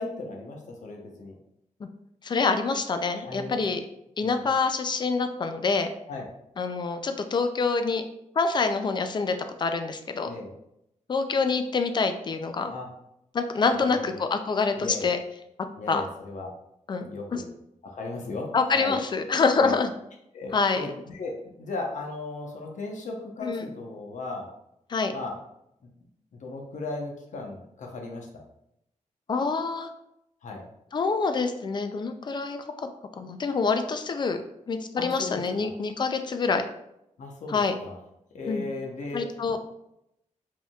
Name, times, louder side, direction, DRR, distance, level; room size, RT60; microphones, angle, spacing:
voice 1, 0.0-1.3 3.2-3.6 4.2-4.4 6.1-6.3 10.3-10.5 12.7-12.9 13.7-14.2 14.8-15.1 15.8-16.5 17.0-17.5 17.8-18.5 18.7-19.0 19.6-19.7 20.3-21.3 21.6-24.5 25.1-25.3 26.4-28.3 30.4-30.6 35.0-35.7 37.2-38.0 38.3-39.6, left 3 dB, 70° left, 0 dB, 0.9 m, -36 dB
voice 2, 2.2-3.8 4.2-5.9 6.6-8.0 8.4-10.3 11.1-12.7 13.3-15.2 15.9-16.0 16.9-17.1 17.3-17.4 18.5-19.9 20.5-20.9 23.4-23.7 24.9-25.1 29.3-29.9 30.9-32.9 33.2-34.4 34.7-36.7 37.5-37.7 38.5-38.6 39.1-39.6, left 4 dB, 35° left, 7 dB, 0.4 m, -26 dB
5.1 x 3.6 x 2.3 m, 0.81 s
wide cardioid pair, 175°, 13 cm